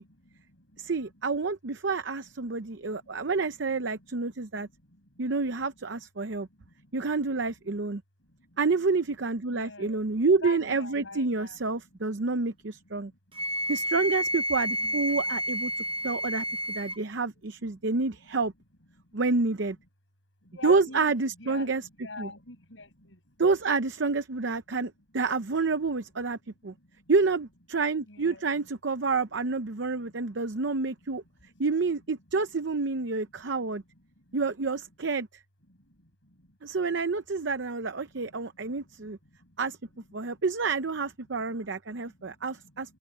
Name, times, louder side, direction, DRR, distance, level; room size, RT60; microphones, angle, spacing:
voice 1, 0.1-1.1 2.6-3.5 3.8-4.2 4.5-5.3 6.5-7.1 7.6-7.7 8.2-8.6 9.5-10.1 10.4-11.6 11.9-12.6 12.9-13.7 14.8-15.4 15.7-16.6 16.8-17.2 17.7-17.9 18.3-18.4 18.9-19.2 20.4-21.1 21.4-23.4 26.7-27.1 28.1-28.7 29.7-30.5 31.1-31.6 33.4-33.5 33.9-34.4 35.7-36.6 38.1-39.7 40.2-40.4 41.4-43.0, left 3 dB, 70° left, 7.7 m, -49 dB
voice 2, 0.8-4.7 5.2-6.5 6.9-8.0 8.6-13.1 13.7-15.7 16.0-18.5 19.1-19.8 20.6-21.9 22.2-22.3 23.4-26.4 26.6-26.7 27.1-31.2 31.6-33.8 34.3-35.3 36.6-39.2 39.6-39.8 40.1-43.0, right 4 dB, 65° right, 0.7 m, -28 dB
Wind instrument woodwind instrument, 13.3-17.0, equal, 25° right, 0.8 m, -30 dB
head